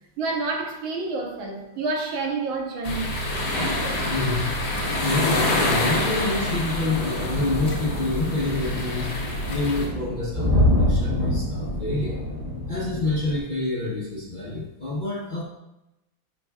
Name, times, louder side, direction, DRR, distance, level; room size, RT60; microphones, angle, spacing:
voice 1, 0.2-3.1 3.5-4.1, right 3 dB, 80° right, 1.8 m, -29 dB
sound 1, 2.8-9.9, left 1 dB, 55° left, 1.6 m, -26 dB
voice 2, 4.1-4.5 5.0-9.2 9.5-12.2 12.7-15.4, left 2 dB, 35° left, 0.9 m, -27 dB
sound 2, 7.2-13.4, left 1 dB, 30° right, 0.9 m, -26 dB
11.0 x 4.5 x 2.4 m
omnidirectional pair, 2.2 m